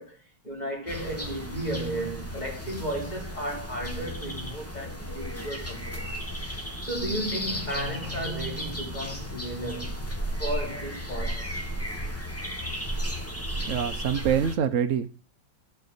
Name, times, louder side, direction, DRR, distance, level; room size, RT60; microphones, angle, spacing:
voice 1, 0.0-6.1 6.8-10.0 10.4-11.5, right 1 dB, 25° left, 3.1 m, -34 dB
sound 1, 0.9-14.5, equal, 10° left, 1.5 m, -34 dB
sound 2, 7.4-11.9, left 12 dB, 90° left, 1.9 m, -44 dB
voice 2, 13.6-15.1, right 8 dB, 60° right, 1.0 m, -25 dB
12.0 x 4.6 x 6.7 m
omnidirectional pair, 1.8 m